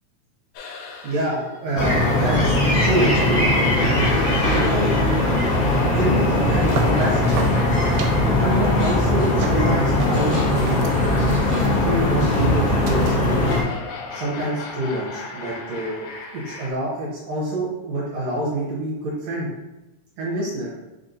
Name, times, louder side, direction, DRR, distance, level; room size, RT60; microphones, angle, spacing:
sound 1, 0.6-16.7, left 3 dB, 90° left, 2.2 m, -36 dB
voice 1, 1.0-5.0 5.9-7.3 8.3-10.9 11.6-13.7 14.1-16.1 16.3-19.5 20.2-20.7, right 1 dB, 70° right, -6 dB, 2.0 m, -26 dB
sound 2, 1.8-13.6, left 1 dB, 45° left, 1.1 m, -20 dB
sound 3, 6.4-13.4, right 2 dB, 85° right, 2.1 m, -33 dB
4.9 x 2.6 x 3.9 m, 1.0 s
omnidirectional pair, 3.5 m